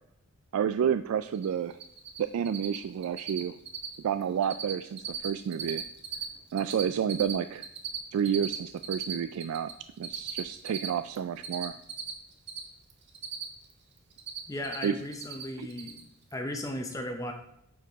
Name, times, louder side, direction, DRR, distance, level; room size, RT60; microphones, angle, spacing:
voice 1, 0.5-1.8 2.2-3.5 4.0-5.8 6.5-7.7 8.1-9.7 10.0-11.8 14.8-15.0 15.6-15.7, right 8 dB, 80° right, 11 dB, 0.3 m, -30 dB
Cricket, 1.3-1.5 1.7-2.2 2.4-2.8 3.0-3.4 3.6-4.0 4.2-4.7 5.0-6.2 6.5-9.7 10.0-12.6 12.9-13.7 14.0-14.8 15.1-15.4 15.7-16.0, right 9 dB, 50° right, 1.0 m, -36 dB
voice 2, 14.5-16.0 16.3-17.3, left 1 dB, 15° left, 4 dB, 0.7 m, -36 dB
9.1 x 4.7 x 3.5 m, 0.79 s
head